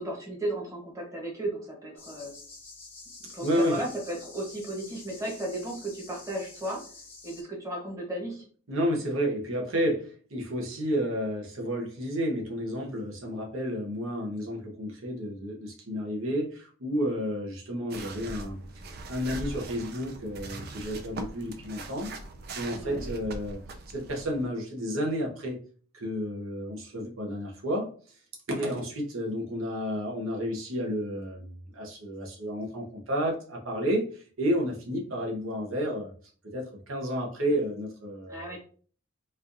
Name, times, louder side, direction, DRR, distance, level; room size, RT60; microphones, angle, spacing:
voice 1, 0.0-2.3 3.3-6.8 7.2-8.4 22.7-23.1 28.5-28.8 38.3-38.6, right 1 dB, 15° right, -2 dB, 1.0 m, -35 dB
sound 1, 2.0-7.4, left 3 dB, 10° left, 0.7 m, -48 dB
voice 2, 3.4-3.8 8.7-18.6 19.1-22.1 22.5-23.6 23.9-25.6 25.9-27.9 28.5-36.1 36.4-38.6, equal, 70° right, 0 dB, 0.8 m, -31 dB
sound 2, 17.9-24.5, right 2 dB, 45° right, 0.4 m, -41 dB
4.2 x 2.5 x 2.6 m, 0.43 s
head